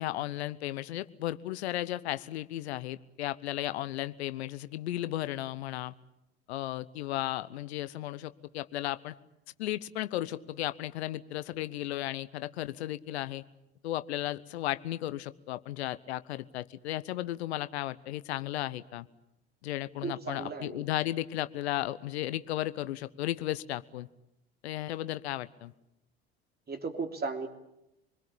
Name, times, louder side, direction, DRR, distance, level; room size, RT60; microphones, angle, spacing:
voice 1, 0.0-5.9 6.5-9.1 9.6-13.4 13.8-19.1 19.6-24.1 24.6-25.7, left 14 dB, 75° left, 15 dB, 0.9 m, -35 dB
voice 2, 20.0-20.8 26.7-27.5, right 4 dB, 30° right, 5 dB, 3.2 m, -35 dB
26.5 x 21.5 x 8.6 m, 0.87 s
hypercardioid pair, 70°, 32 cm